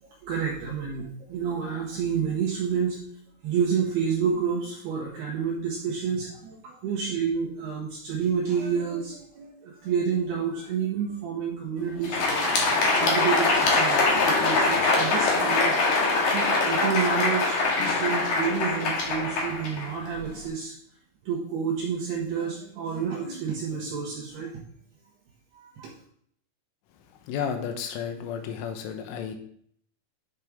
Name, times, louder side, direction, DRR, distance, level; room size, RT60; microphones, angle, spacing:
voice 1, 0.2-3.0 3.4-12.5 13.0-15.8 16.3-20.7 21.2-24.5 25.5-25.9, right 6 dB, 65° right, -5 dB, 3.2 m, -29 dB
Crowd, 11.9-20.4, left 3 dB, 55° left, 2.4 m, -23 dB
voice 2, 27.3-29.4, left 7 dB, 80° left, 5 dB, 3.5 m, -32 dB
12.0 x 6.5 x 3.6 m, 0.64 s
omnidirectional pair, 5.6 m